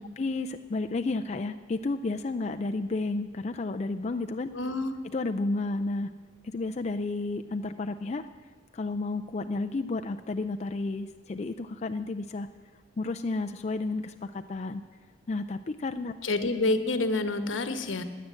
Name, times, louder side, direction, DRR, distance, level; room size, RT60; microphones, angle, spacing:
voice 1, 0.2-4.5 5.1-6.1 6.4-8.3 8.7-12.5 13.0-14.8 15.3-16.1, left 3 dB, 35° left, 6 dB, 0.4 m, -31 dB
voice 2, 4.5-4.9 16.2-18.0, left 2 dB, 80° left, 9 dB, 1.1 m, -28 dB
17.0 x 10.0 x 7.6 m, 1.5 s
head